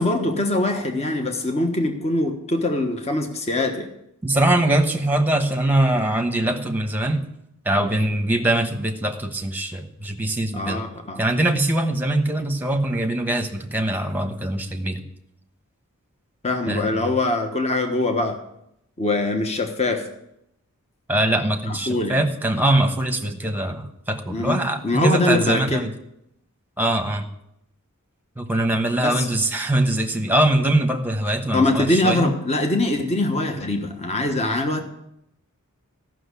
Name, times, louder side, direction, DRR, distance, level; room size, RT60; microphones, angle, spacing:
voice 1, 0.0-3.9 10.5-11.2 16.4-18.4 19.0-20.0 21.6-22.2 24.3-25.8 29.0-29.3 31.5-34.8, left 2 dB, 30° left, 5 dB, 1.2 m, -23 dB
voice 2, 4.2-7.3 7.6-10.8 11.2-15.0 16.7-17.0 21.1-25.9 26.8-27.3 28.4-32.3, right 1 dB, 10° right, 5 dB, 1.1 m, -22 dB
13.5 x 6.3 x 8.3 m, 0.79 s
head